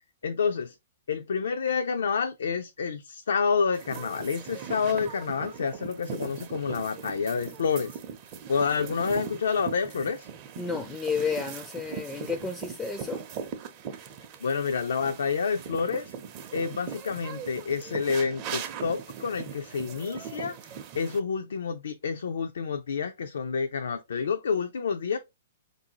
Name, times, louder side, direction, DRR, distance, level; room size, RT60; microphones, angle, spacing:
voice 1, 0.2-0.7 1.1-8.0 8.5-10.3 14.4-16.1 16.5-20.6 20.9-25.2, left 5 dB, 80° left, 0.4 m, -28 dB
sound 1, 3.7-21.2, right 7 dB, 40° right, 0.6 m, -40 dB
voice 2, 10.6-13.2, left 5 dB, 10° left, 0.4 m, -31 dB
3.6 x 2.6 x 2.8 m
hypercardioid pair, 130°, 0 cm